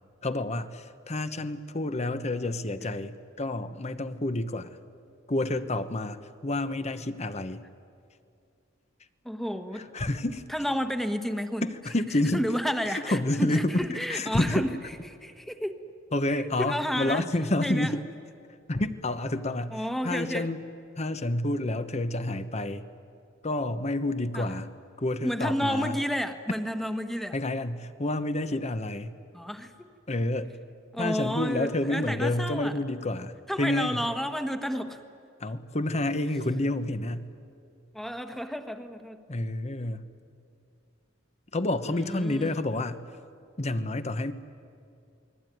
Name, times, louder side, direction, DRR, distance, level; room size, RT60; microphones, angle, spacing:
voice 1, 0.2-4.8 5.3-7.6 9.7-10.4 11.6-12.4 12.9-14.7 16.1-18.0 18.7-20.6 21.0-22.9 23.4-24.7 25.0-26.0 27.3-29.2 30.1-30.5 31.0-34.0 35.4-37.3 39.3-40.0 41.5-43.0 43.6-44.3, left 1 dB, 35° left, 11 dB, 1.1 m, -29 dB
voice 2, 9.2-9.9 10.5-11.7 12.3-14.7 15.2-15.8 16.3-17.2 17.6-17.9 19.7-20.5 24.3-24.6 25.2-27.3 29.3-29.9 30.9-32.8 33.5-35.0 37.9-39.2 41.9-42.6, equal, ahead, 8 dB, 1.4 m, -31 dB
29.0 x 21.0 x 9.4 m, 2.5 s
head